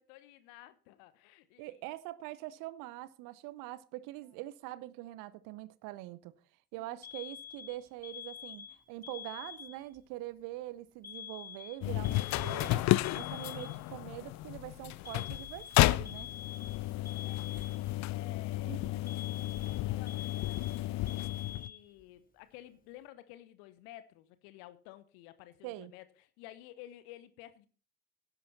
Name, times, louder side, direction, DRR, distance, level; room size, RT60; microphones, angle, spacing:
voice 1, 0.0-1.8 6.8-7.0 17.0-27.7, left 14 dB, 70° left, 1.0 m, -54 dB
voice 2, 1.6-6.3 6.7-16.3 18.6-19.0 25.6-25.9, right 16 dB, 65° right, 0.7 m, -44 dB
Alarm, 7.0-10.0 11.0-14.0 15.0-18.0 19.1-22.0, left 9 dB, 25° left, 3.3 m, -47 dB
sound 1, 11.8-21.7, left 17 dB, 50° left, 0.5 m, -32 dB
12.0 x 10.5 x 4.2 m
figure-of-eight pair, 45°, 35 cm